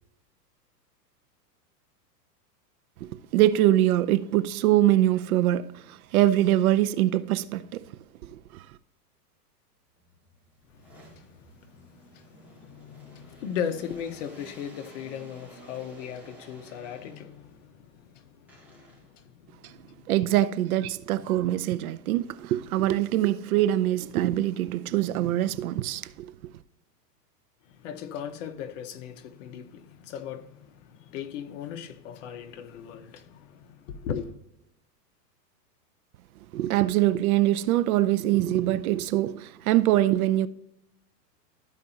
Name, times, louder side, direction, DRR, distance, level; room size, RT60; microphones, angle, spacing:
voice 1, 3.3-7.8 8.3-8.4 20.1-26.3 36.5-40.5, right 14 dB, 60° right, 0.6 m, -23 dB
sound 1, 10.0-17.6 18.5-19.3 22.5-23.3 23.7-26.1, equal, 5° right, 2.2 m, -53 dB
voice 2, 10.8-20.1 27.7-34.3, left 8 dB, 50° left, 1.0 m, -38 dB
13.0 x 5.0 x 2.8 m
hypercardioid pair, 135°, 49 cm